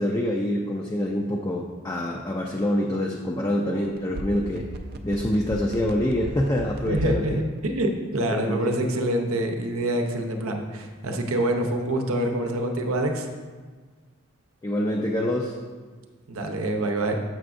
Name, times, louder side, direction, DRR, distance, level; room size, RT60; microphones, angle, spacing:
voice 1, 0.0-4.6 5.0-7.4 8.3-9.0 14.6-15.5, left 1 dB, 15° left, -1 dB, 0.4 m, -26 dB
sound 1, 3.8-7.3 7.6-7.7, right 2 dB, 45° right, 0.4 m, -34 dB
voice 2, 6.9-13.3 16.3-17.1, right 1 dB, 90° right, 4 dB, 0.7 m, -26 dB
7.5 x 5.7 x 2.5 m, 1.4 s
head